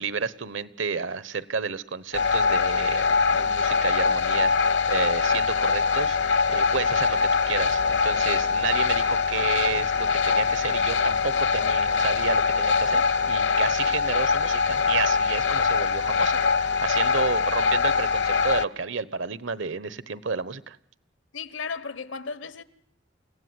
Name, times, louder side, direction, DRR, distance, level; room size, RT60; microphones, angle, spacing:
voice 1, 0.0-20.8, right 5 dB, 80° right, 1.1 m, -31 dB
sound 1, 2.1-18.7, left 5 dB, 65° left, 0.9 m, -23 dB
voice 2, 21.3-22.6, left 5 dB, 85° left, 1.2 m, -35 dB
28.5 x 16.5 x 9.6 m
head